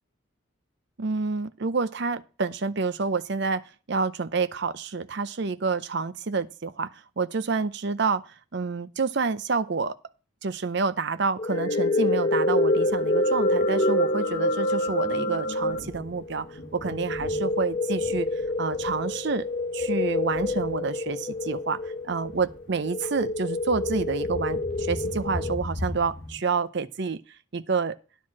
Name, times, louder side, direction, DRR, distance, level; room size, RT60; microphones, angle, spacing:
voice 1, 1.0-3.6 3.9-10.0 10.4-16.5 16.7-18.3 18.6-19.5 19.7-27.2 27.5-28.0, right 4 dB, 55° right, 0.6 m, -28 dB
sound 1, 11.4-25.6, left 2 dB, 25° left, 0.5 m, -28 dB
sound 2, 11.5-15.8, equal, 90° left, 1.7 m, -27 dB
Thunder, 12.7-26.4, left 1 dB, 70° left, 2.0 m, -41 dB
10.5 x 4.6 x 7.4 m
head